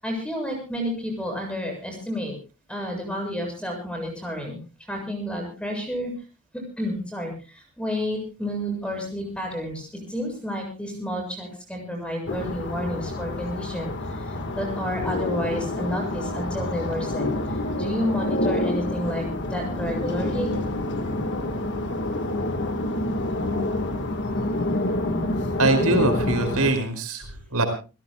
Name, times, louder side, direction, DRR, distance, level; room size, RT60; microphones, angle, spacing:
voice 1, 0.0-2.4 2.7-6.1 6.5-19.2 19.5-20.5, equal, 5° left, 2 dB, 7.3 m, -30 dB
sound 1, 12.3-26.7, left 1 dB, 55° left, 1.6 m, -27 dB
voice 2, 25.6-27.6, right 2 dB, 85° right, 6 dB, 5.0 m, -23 dB
29.5 x 17.0 x 2.3 m, 0.33 s
head